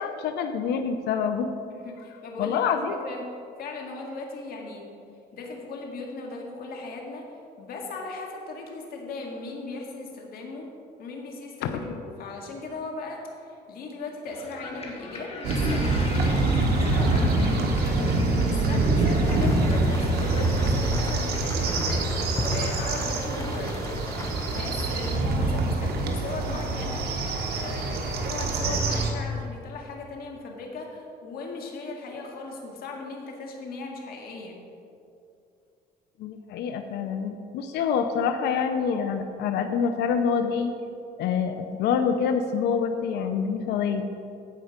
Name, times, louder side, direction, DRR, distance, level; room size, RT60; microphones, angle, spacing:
voice 1, 0.0-1.5 2.4-3.0 11.6-11.8 36.2-40.7 41.2-44.1, left 6 dB, 80° left, 7 dB, 0.7 m, -26 dB
voice 2, 1.7-3.3 3.6-4.9 5.3-7.3 7.6-10.7 11.0-22.1 22.5-23.9 24.5-34.6, left 3 dB, 65° left, 1 dB, 2.0 m, -38 dB
sound 1, 14.3-23.6, left 2 dB, 35° left, 1.6 m, -38 dB
sound 2, 15.4-29.1, right 2 dB, 70° right, 1.4 m, -25 dB
sound 3, 19.2-25.2, left 3 dB, 20° left, 0.9 m, -40 dB
15.5 x 5.3 x 5.2 m, 2.6 s
cardioid pair, 110°, 17 cm